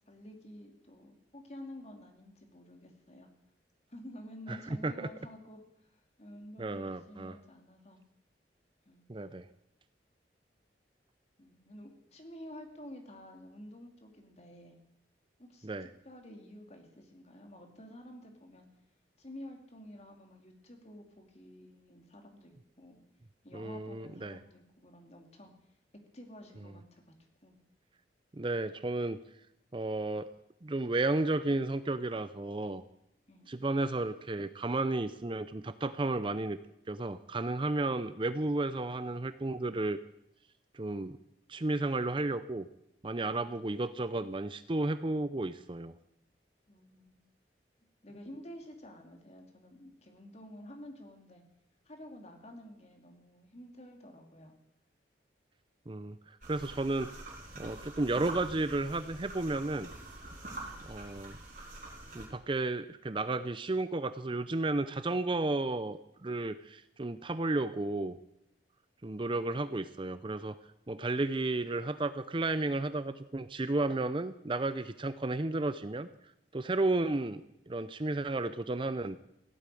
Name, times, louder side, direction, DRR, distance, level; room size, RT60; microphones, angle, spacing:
voice 1, 0.1-3.3 3.9-5.6 6.2-8.0 8.8-9.2 11.4-14.8 15.4-18.7 19.2-22.5 22.8-23.0 23.4-25.5 26.1-27.1 27.4-27.6 33.3-33.5 46.7-47.2 48.0-51.4 51.8-54.5, left 1 dB, 40° left, 3 dB, 2.7 m, -50 dB
voice 2, 4.5-5.1 6.6-7.4 9.1-9.5 15.6-15.9 23.5-24.4 28.3-29.2 29.7-30.3 30.6-32.8 33.5-36.6 36.9-40.0 40.7-41.2 41.5-42.7 43.0-46.0 55.9-57.1 57.6-59.9 60.8-61.4 62.1-68.2 69.0-70.6 70.9-76.1 76.5-77.4 77.7-79.2, right 2 dB, 30° right, 13 dB, 0.6 m, -33 dB
sound 1, 56.4-62.3, right 2 dB, 50° right, 4.6 m, -46 dB
16.5 x 8.7 x 9.2 m, 0.78 s
head